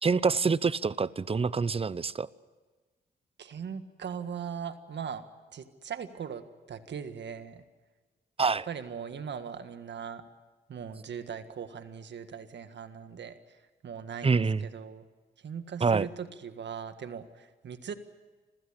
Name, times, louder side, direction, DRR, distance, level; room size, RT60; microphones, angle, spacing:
voice 1, 0.0-2.3 8.4-8.7 14.2-14.7 15.8-16.1, right 5 dB, 30° right, 19 dB, 0.7 m, -26 dB
voice 2, 3.4-5.2 5.5-7.6 8.4-10.2 10.7-13.3 13.8-15.0 15.4-17.9, right 7 dB, 65° right, 10 dB, 1.7 m, -39 dB
26.0 x 15.5 x 10.0 m, 1.3 s
cardioid pair, 70°, 20 cm